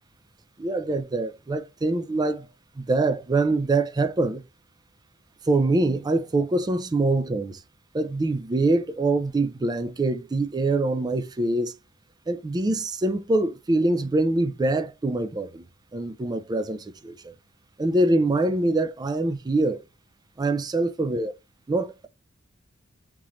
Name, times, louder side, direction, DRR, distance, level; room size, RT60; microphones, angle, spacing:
voice 1, 0.6-2.5 2.8-4.4 5.4-7.6 7.9-11.7 12.3-15.6 15.9-17.3 17.8-19.8 20.4-21.3 21.7-22.1, right 2 dB, 20° right, 0.4 m, -24 dB
3.7 x 3.1 x 2.9 m
head